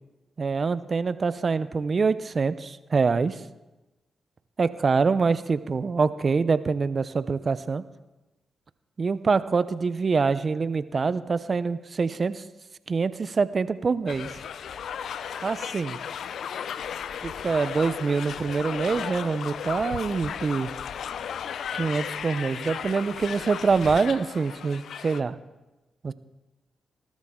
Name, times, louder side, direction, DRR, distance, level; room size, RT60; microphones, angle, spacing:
voice 1, 0.4-3.4 4.6-7.8 9.0-12.4 12.9-14.3 15.4-16.0 17.2-20.7 21.8-25.4 26.0-26.1, right 4 dB, 50° right, 14 dB, 0.8 m, -25 dB
sound 1, 14.1-25.2, left 8 dB, 70° left, 0.5 m, -35 dB
20.0 x 13.0 x 3.8 m, 1.1 s
hypercardioid pair, 45°, 0 cm